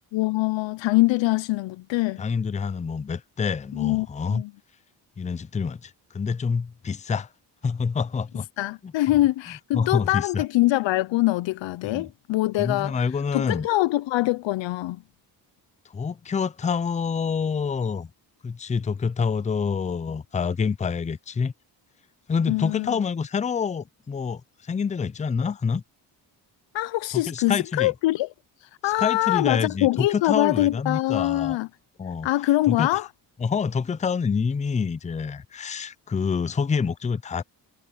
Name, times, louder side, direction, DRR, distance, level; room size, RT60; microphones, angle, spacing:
voice 1, 0.1-2.2 3.7-4.5 8.6-13.0 13.3-15.0 22.5-22.9 26.7-28.3 28.6-31.7 32.2-33.1, left 17 dB, 85° left, 0.6 m, -24 dB
voice 2, 2.2-4.4 5.2-7.3 7.6-8.5 8.8-8.9 9.5-10.4 11.8-12.1 12.6-13.7 15.9-18.1 18.4-21.5 22.3-25.8 27.1-27.9 28.8-31.6 32.0-32.3 32.7-32.9 33.4-37.4, left 5 dB, 20° left, 0.4 m, -27 dB
cardioid pair, 110°, 44 cm